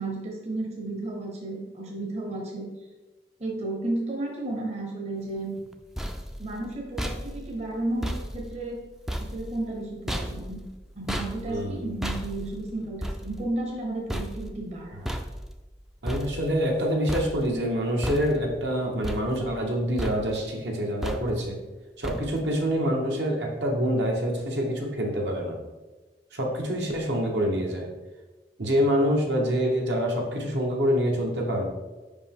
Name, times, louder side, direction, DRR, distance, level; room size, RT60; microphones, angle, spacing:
voice 1, 0.0-2.7 3.4-5.5 6.4-8.8 9.2-10.6 10.9-15.1, right 2 dB, 35° right, 0 dB, 0.9 m, -33 dB
sound 1, 5.6-16.8 17.1-17.7 18.0-18.7 19.0-19.7 20.0-20.5 21.0-21.6 22.0-22.6, equal, ahead, 0.3 m, -35 dB
voice 2, 11.5-11.8 16.0-21.6 22.0-25.6 26.3-27.9 28.6-31.7, equal, 70° right, 0 dB, 1.1 m, -26 dB
5.1 x 5.1 x 3.6 m, 1.2 s
head